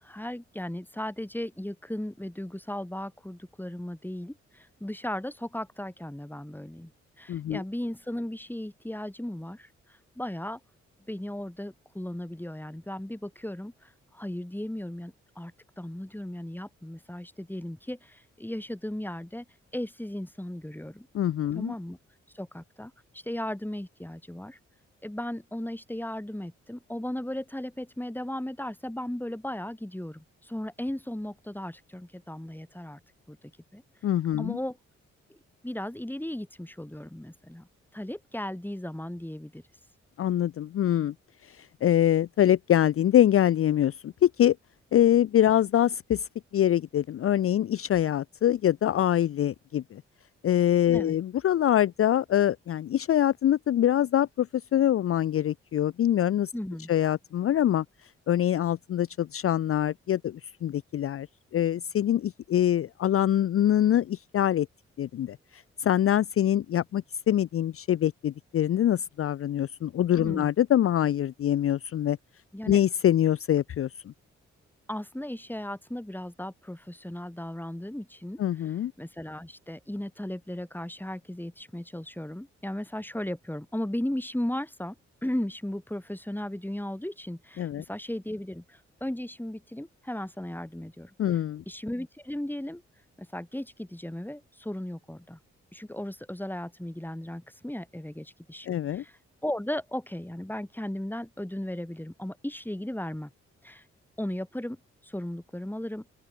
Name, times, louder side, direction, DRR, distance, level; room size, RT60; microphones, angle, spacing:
voice 1, 0.0-6.9 7.2-10.6 11.1-19.4 19.7-21.1 21.5-22.0 22.3-24.6 25.0-33.0 33.3-33.4 33.7-33.8 34.4-34.8 35.3-35.4 35.6-37.7 37.9-39.6 50.9-51.2 56.5-56.9 70.2-70.5 72.5-72.8 74.9-84.9 85.2-91.4 91.7-92.8 93.2-95.4 95.7-103.3 103.6-103.8 104.2-106.2, left 1 dB, 5° left, 3.3 m, -36 dB
voice 2, 7.3-7.6 21.1-21.7 34.0-34.6 40.2-41.1 41.4-44.6 44.9-46.3 46.5-50.0 50.4-56.5 56.9-57.8 58.3-61.3 61.5-64.7 65.0-72.2 72.7-73.9 78.4-78.9 87.6-87.8 91.2-91.6 98.7-99.0, left 11 dB, 50° left, 0.5 m, -24 dB
open air
hypercardioid pair, 40°, 30 cm